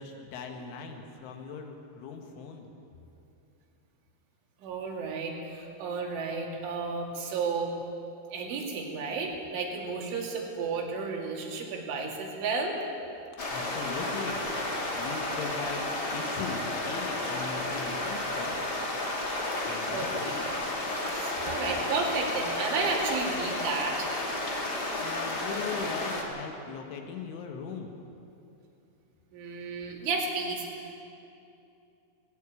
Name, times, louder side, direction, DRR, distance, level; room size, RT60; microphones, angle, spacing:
voice 1, 0.0-2.7 13.5-14.5 15.0-18.7 19.6-20.5 25.0-27.9, left 5 dB, 85° left, 4 dB, 4.1 m, -39 dB
voice 2, 4.6-7.8 8.3-12.8 19.9-20.1 21.0-24.1 29.3-31.0, right 4 dB, 90° right, 0 dB, 4.9 m, -32 dB
sound 1, 13.4-26.2, left 2 dB, 35° left, 1.8 m, -32 dB
18.5 x 17.0 x 8.6 m, 2.7 s
omnidirectional pair, 5.4 m